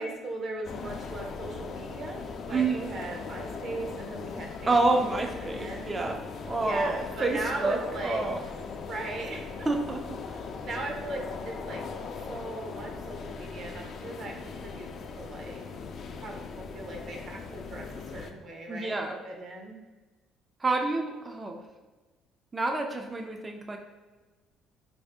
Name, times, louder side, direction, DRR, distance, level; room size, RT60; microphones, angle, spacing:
voice 1, 0.0-5.0 5.5-5.9 6.6-8.3 8.9-9.7 10.6-11.8 12.3-14.9 15.1-15.6 16.1-17.9 18.1-19.0 19.2-19.7, right 2 dB, 55° right, 1 dB, 0.8 m, -38 dB
sound 1, 0.6-18.3, left 5 dB, 55° left, 0.4 m, -39 dB
voice 2, 2.5-2.9 4.7-6.2 6.5-8.4 9.7-10.4 18.7-19.2 20.6-21.6 22.5-23.8, right 3 dB, 25° right, 3 dB, 0.4 m, -28 dB
3.2 x 2.6 x 3.5 m, 1.2 s
supercardioid pair, 75°, 0 cm